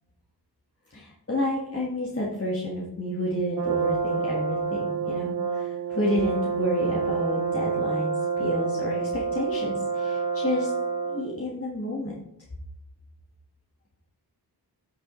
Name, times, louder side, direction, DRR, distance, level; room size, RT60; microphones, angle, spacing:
voice 1, 0.9-10.7 11.1-12.1, left 1 dB, 35° left, -4 dB, 1.7 m, -30 dB
Brass instrument, 3.6-11.4, right 5 dB, 55° right, 0.8 m, -28 dB
8.5 x 6.3 x 3.2 m, 0.79 s
cardioid pair, 45°, 40 cm